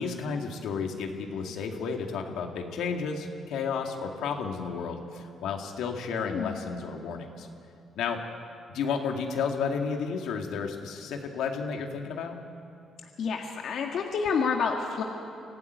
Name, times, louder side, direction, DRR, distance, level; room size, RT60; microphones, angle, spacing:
voice 1, 0.0-7.5 8.0-8.2 8.7-12.3, left 5 dB, 85° left, 3 dB, 2.2 m, -32 dB
voice 2, 6.2-6.6 13.2-15.0, left 5 dB, 65° left, 2 dB, 1.8 m, -29 dB
25.0 x 15.0 x 9.6 m, 2.7 s
cardioid pair, 90°, 0 cm